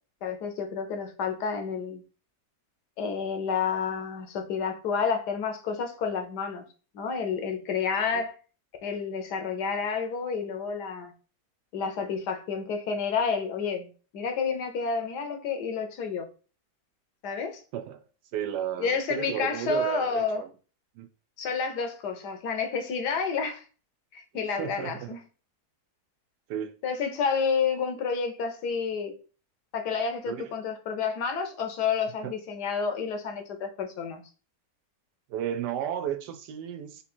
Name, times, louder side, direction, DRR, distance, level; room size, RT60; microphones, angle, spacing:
voice 1, 0.2-2.0 3.0-6.6 6.9-8.3 8.8-11.1 11.7-16.3 17.2-17.6 18.8-20.4 21.4-23.6 24.1-25.2 26.8-29.1 29.7-34.2, left 5 dB, 80° left, 1.4 m, -30 dB
voice 2, 17.7-18.0 18.3-20.5 20.9-21.1 24.6-25.2 26.5-26.8 30.3-30.5 32.2-32.3 35.3-37.0, right 10 dB, 85° right, 1.2 m, -33 dB
3.7 x 2.9 x 4.2 m
omnidirectional pair, 1.7 m